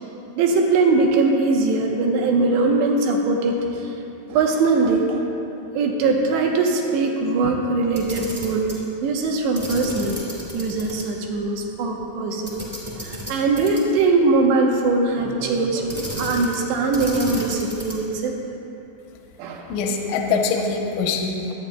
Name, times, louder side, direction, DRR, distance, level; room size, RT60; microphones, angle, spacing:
voice 1, 0.4-3.9 4.3-5.2 5.8-8.7 9.0-10.2 10.5-12.6 12.9-18.4 19.4-19.7, right 3 dB, 75° right, 1 dB, 2.7 m, -21 dB
Camera, 7.9-8.8 9.5-11.0 11.4-11.5 12.4-14.0 15.9-16.6 16.9-18.1, equal, 20° right, 1.0 m, -33 dB
voice 2, 19.7-21.5, left 4 dB, 80° left, 1 dB, 3.1 m, -23 dB
24.5 x 9.0 x 2.2 m, 2.9 s
omnidirectional pair, 5.7 m